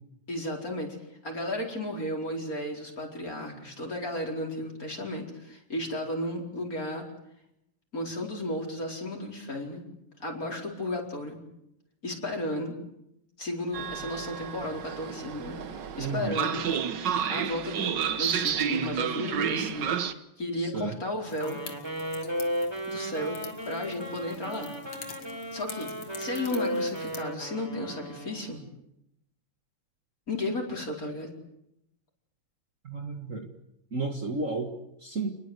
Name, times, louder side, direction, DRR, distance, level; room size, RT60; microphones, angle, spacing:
voice 1, 0.3-1.0 1.2-7.1 7.9-9.8 10.2-11.4 12.0-12.7 13.4-16.7 17.3-21.6 22.9-24.7 25.5-28.6 30.3-31.3, left 1 dB, 40° left, 1 dB, 5.1 m, -34 dB
Train, 13.7-20.1, right 8 dB, 60° right, 1.7 m, -30 dB
voice 2, 16.0-16.4 20.6-21.0 32.8-33.5 33.9-34.7 35.0-35.4, right 3 dB, 40° right, 4 dB, 2.0 m, -32 dB
sound 1, 21.3-27.2, left 6 dB, 80° left, 3.0 m, -47 dB
Wind instrument woodwind instrument, 21.3-28.6, equal, 10° right, 4.1 m, -35 dB
29.0 x 20.5 x 8.1 m, 0.82 s
omnidirectional pair, 2.4 m